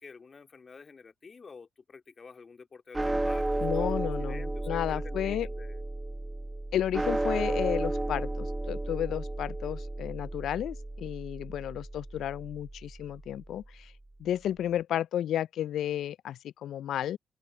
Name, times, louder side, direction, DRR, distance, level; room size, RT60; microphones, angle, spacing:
voice 1, 0.0-5.8, left 5 dB, 40° left, 2.3 m, -49 dB
sound 1, 2.9-13.4, right 2 dB, 15° right, 1.4 m, -33 dB
voice 2, 3.6-5.5 6.7-13.9 14.2-17.2, left 11 dB, 70° left, 0.3 m, -32 dB
open air
hypercardioid pair, 50°, 0 cm